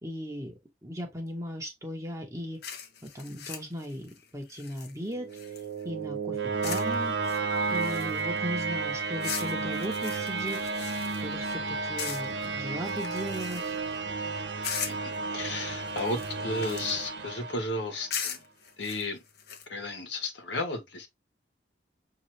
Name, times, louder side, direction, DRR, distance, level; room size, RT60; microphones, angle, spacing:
voice 1, 0.0-2.6 3.0-7.2 7.7-10.6 11.2-13.8, equal, 20° right, 0.9 m, -37 dB
sound 1, 2.6-5.8 6.6-6.9 7.2-8.4 9.2-11.6 12.0-12.5 12.8-13.9 14.6-15.2 15.9-17.1 18.1-19.7, left 7 dB, 60° left, 0.9 m, -39 dB
sound 2, 5.0-18.1, right 4 dB, 90° right, 0.9 m, -32 dB
voice 2, 14.9-18.4 18.8-19.2 19.7-21.1, left 2 dB, 85° left, 1.2 m, -34 dB
6.0 x 2.8 x 3.2 m
head